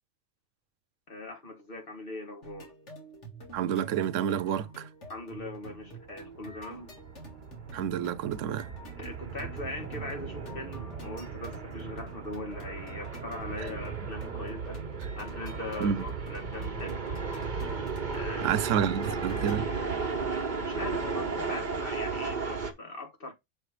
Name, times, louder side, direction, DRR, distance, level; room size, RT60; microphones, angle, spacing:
voice 1, 1.1-2.7 5.1-6.9 9.0-14.8 15.2-17.0 18.1-18.9 20.6-23.3, left 2 dB, 50° left, 1.7 m, -40 dB
sound 1, 2.4-19.6, right 2 dB, 70° left, 2.3 m, -48 dB
voice 2, 3.5-4.9 7.7-8.7 13.6-13.7 15.8-16.0 18.4-19.7, right 9 dB, 85° right, 0.9 m, -29 dB
sound 2, 5.6-22.7, right 4 dB, 40° right, 1.2 m, -35 dB
6.9 x 3.3 x 4.8 m
omnidirectional pair, 1.3 m